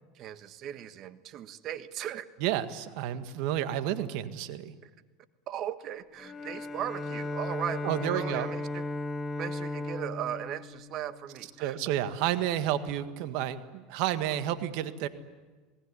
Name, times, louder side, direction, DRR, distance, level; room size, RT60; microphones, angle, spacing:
voice 1, 0.1-2.3 4.8-4.9 5.5-8.8 9.4-11.8, right 10 dB, 50° right, 11 dB, 1.4 m, -38 dB
voice 2, 2.4-4.7 7.8-8.5 11.6-15.1, right 12 dB, 65° right, 10 dB, 1.7 m, -30 dB
Bowed string instrument, 6.2-11.7, left 2 dB, 20° left, 1.8 m, -36 dB
27.5 x 19.0 x 9.9 m, 1.3 s
supercardioid pair, 110°, 0 cm